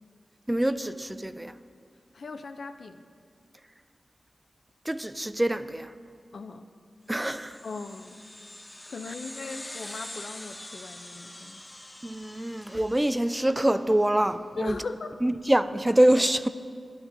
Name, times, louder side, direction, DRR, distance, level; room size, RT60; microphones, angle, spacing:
voice 1, 0.5-1.6 4.9-5.9 7.1-7.6 12.0-14.8 15.2-16.5, right 1 dB, 15° right, 0.3 m, -25 dB
voice 2, 2.1-3.0 6.3-6.7 7.6-8.2 8.9-11.8 14.6-15.1, left 4 dB, 80° left, 0.4 m, -39 dB
sound 1, 7.2-14.0, left 1 dB, 25° left, 0.7 m, -44 dB
12.0 x 11.0 x 2.6 m
cardioid pair, 60°, 0 cm